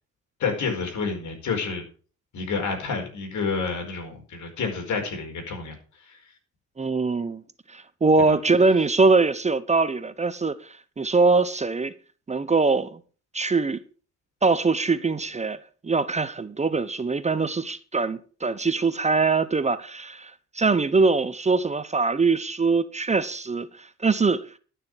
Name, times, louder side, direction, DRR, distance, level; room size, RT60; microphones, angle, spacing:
voice 1, 0.4-1.8 2.3-6.3 8.2-8.4, left 4 dB, 75° left, 4.8 m, -29 dB
voice 2, 6.8-7.4 7.7-11.9 12.3-13.0 13.3-13.8 14.4-15.6 15.8-24.5, right 4 dB, 20° right, 0.8 m, -23 dB
12.0 x 6.7 x 6.3 m
cardioid pair, 90°, 30 cm